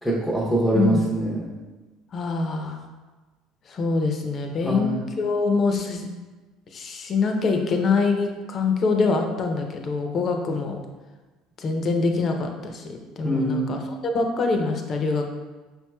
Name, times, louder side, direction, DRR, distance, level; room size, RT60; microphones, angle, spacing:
voice 1, 0.0-1.5 4.6-5.0 13.2-13.9, right 2 dB, 5° left, -6 dB, 0.7 m, -24 dB
voice 2, 2.1-2.8 3.7-6.1 6.7-10.8 11.6-13.8 14.1-15.3, left 4 dB, 45° left, 4 dB, 0.6 m, -24 dB
5.2 x 2.9 x 2.3 m, 1.2 s
hypercardioid pair, 80°, 0 cm